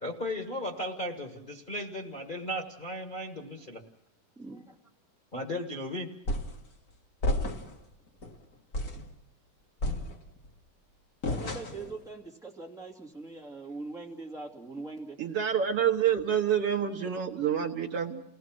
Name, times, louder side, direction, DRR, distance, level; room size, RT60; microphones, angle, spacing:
voice 1, 0.0-3.8 5.3-6.1, left 1 dB, 75° left, 1 dB, 0.4 m, -36 dB
voice 2, 4.4-4.8 11.3-15.2, right 3 dB, ahead, -1 dB, 2.1 m, -42 dB
kick cardboard box, 6.3-6.6 7.2-7.8 8.2-8.4 8.7-9.1 9.8-10.5 11.2-11.9, left 1 dB, 35° left, 1.6 m, -31 dB
voice 3, 15.2-18.2, right 8 dB, 55° right, 1 dB, 1.9 m, -27 dB
29.5 x 18.0 x 6.0 m, 0.77 s
omnidirectional pair, 3.6 m